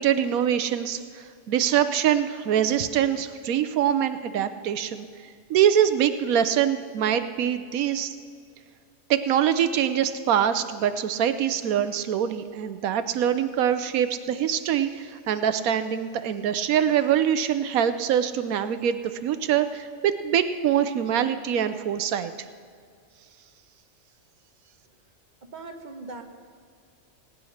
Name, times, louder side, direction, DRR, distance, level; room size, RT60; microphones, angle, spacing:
voice 1, 0.0-5.0 5.5-8.2 9.1-22.3, right 9 dB, 85° right, 10 dB, 1.1 m, -24 dB
voice 2, 25.5-26.2, right 3 dB, 35° right, 4 dB, 1.3 m, -39 dB
18.5 x 9.6 x 6.4 m, 2.2 s
omnidirectional pair, 1.5 m